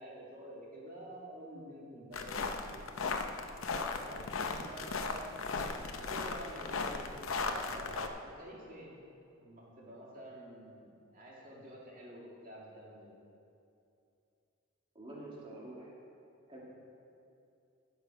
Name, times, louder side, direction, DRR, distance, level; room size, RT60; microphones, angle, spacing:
voice 1, 0.0-2.9 3.9-8.9 9.4-13.1, right 1 dB, 45° right, -4 dB, 2.1 m, -49 dB
sound 1, 2.1-8.1, left 4 dB, 80° left, 0.7 m, -37 dB
voice 2, 15.0-15.9 16.5-16.6, right 1 dB, 25° right, -4 dB, 2.1 m, -47 dB
13.0 x 7.0 x 4.9 m, 2.6 s
head